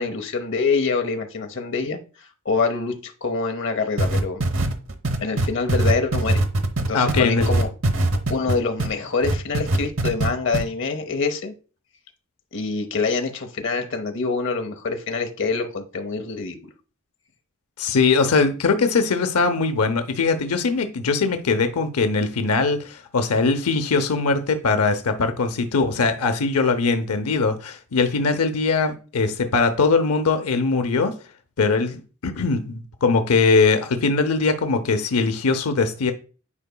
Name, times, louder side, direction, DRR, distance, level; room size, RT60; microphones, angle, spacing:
voice 1, 0.0-2.0 2.4-4.4 5.2-6.4 6.9-7.7 8.0-11.5 12.5-16.6, left 4 dB, 55° left, 0.9 m, -25 dB
sound 1, 4.0-8.9 9.2-10.3 10.5-10.6, right 2 dB, 60° right, 0.9 m, -21 dB
voice 2, 6.9-7.5 17.8-31.1 31.6-36.1, left 4 dB, 90° left, 0.7 m, -21 dB
9.8 x 4.7 x 2.2 m
head